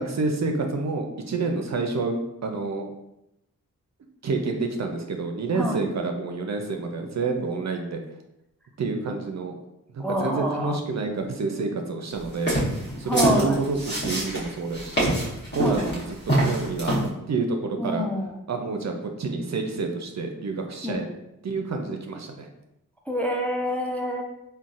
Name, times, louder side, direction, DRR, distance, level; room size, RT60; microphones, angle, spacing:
voice 1, 0.0-2.9 4.2-8.0 8.8-9.5 9.9-12.5 13.0-15.2 15.5-16.9 17.3-18.1 18.5-21.1 21.4-22.5, right 3 dB, 50° right, 4 dB, 0.5 m, -28 dB
voice 2, 10.0-10.8 13.1-13.6 15.6-15.9 17.8-18.4 20.8-21.0 23.1-24.2, equal, 5° left, 0 dB, 0.5 m, -27 dB
sound 1, 12.3-17.1, right 1 dB, 30° left, 1.2 m, -25 dB
3.8 x 2.2 x 2.4 m, 0.87 s
cardioid pair, 50°, 34 cm